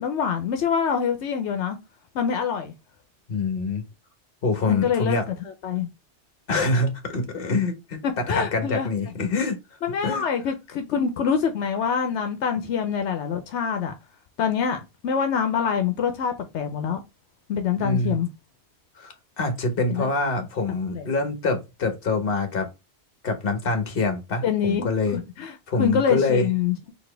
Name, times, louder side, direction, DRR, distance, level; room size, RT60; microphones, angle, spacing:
voice 1, 0.0-1.8 2.1-2.7 4.7-5.2 5.6-5.9 8.3-8.9 9.8-13.9 14.4-17.0 17.5-18.3 19.9-20.1 20.9-21.0 24.4-25.5 25.8-26.9, left 7 dB, 85° left, 1.0 m, -25 dB
voice 2, 3.3-3.8 4.4-5.2 6.5-9.6 10.0-10.3 17.8-18.2 19.0-22.7 23.2-25.2 25.7-26.5, left 3 dB, 55° left, 1.2 m, -25 dB
4.2 x 2.8 x 3.2 m
omnidirectional pair, 1.2 m